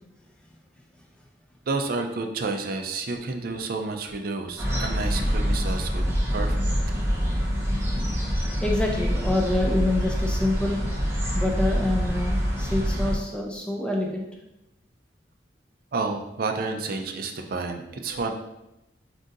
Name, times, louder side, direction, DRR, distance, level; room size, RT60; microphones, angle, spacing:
voice 1, 1.7-6.6 15.9-18.3, right 3 dB, 55° right, 5 dB, 0.4 m, -30 dB
sound 1, 4.6-13.2, equal, 15° right, 0.8 m, -25 dB
voice 2, 8.6-10.8 11.3-14.3, left 1 dB, 5° left, 0 dB, 0.4 m, -26 dB
7.6 x 2.6 x 2.5 m, 0.91 s
head